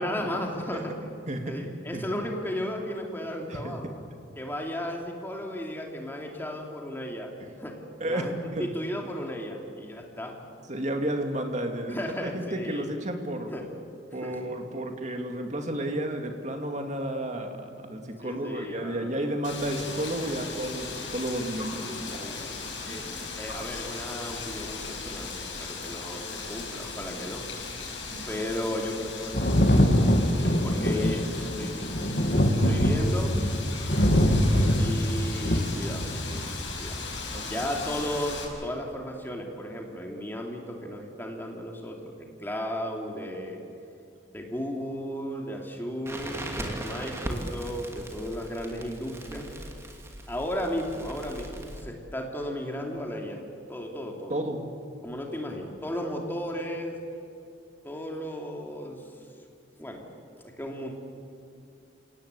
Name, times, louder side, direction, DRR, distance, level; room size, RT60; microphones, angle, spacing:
voice 1, 0.0-1.1 1.4-3.9 4.4-7.3 7.6-8.3 8.6-10.4 11.9-12.9 13.5-13.7 14.2-14.4 18.2-19.4 22.2-27.4 28.3-29.6 30.4-31.9 32.6-33.3 34.7-36.2 36.8-37.0 37.4-43.6 44.3-49.5 50.3-53.4 53.7-54.4 55.0-57.0 57.8-59.1 59.8-60.0 60.6-60.9, equal, 10° left, 0 dB, 2.9 m, -35 dB
voice 2, 1.3-2.0 3.5-3.7 7.4-7.5 8.0-8.7 10.7-13.5 14.1-22.4 22.6-23.0 28.1-28.3 37.3-37.5 54.3-54.6, right 1 dB, 40° right, 4 dB, 2.4 m, -32 dB
Wind, 19.4-38.4, left 4 dB, 75° left, 6.1 m, -38 dB
Thunder, 29.3-36.7 37.8-37.9, equal, 55° left, 2.4 m, -23 dB
Crackle, 46.1-51.8, right 1 dB, 15° right, 2.5 m, -38 dB
29.5 x 18.0 x 8.3 m, 2.7 s
head